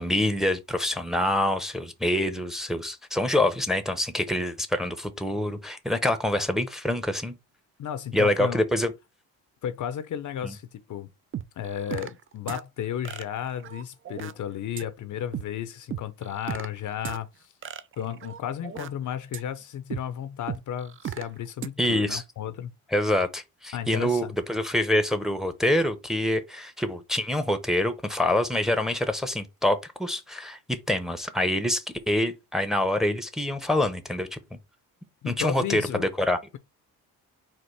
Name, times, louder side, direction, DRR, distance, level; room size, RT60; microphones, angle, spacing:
voice 1, 0.0-7.3 8.1-8.9 10.4-10.5 21.8-22.2 22.9-34.4 35.3-36.4, left 1 dB, ahead, 0.7 m, -26 dB
voice 2, 7.8-8.6 9.6-11.1 11.6-17.5 18.0-22.7 23.7-24.3 35.2-36.1, left 9 dB, 55° left, 0.6 m, -33 dB
sound 1, 11.3-12.2 12.5-12.6 13.0-14.3 14.8-14.9 15.3-15.4 15.9-16.7 17.0-17.2 17.6-18.9 19.3-19.4 19.9-20.0 20.5-21.2 21.6-21.7, right 9 dB, 35° right, 0.4 m, -35 dB
4.4 x 2.4 x 4.5 m
cardioid pair, 85°, 37 cm